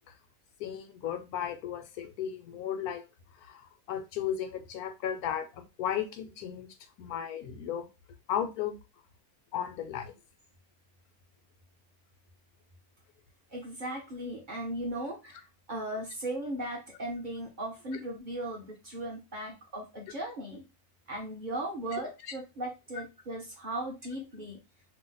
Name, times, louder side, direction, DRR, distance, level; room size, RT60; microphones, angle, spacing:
voice 1, 0.6-3.0 3.4-6.7 7.0-7.9 8.3-8.8 9.5-10.1 21.9-22.0, left 9 dB, 80° left, 7 dB, 1.1 m, -35 dB
voice 2, 13.5-20.6 21.1-24.6, right 1 dB, 50° right, 0 dB, 0.6 m, -37 dB
2.8 x 2.0 x 3.8 m, 0.27 s
omnidirectional pair, 1.6 m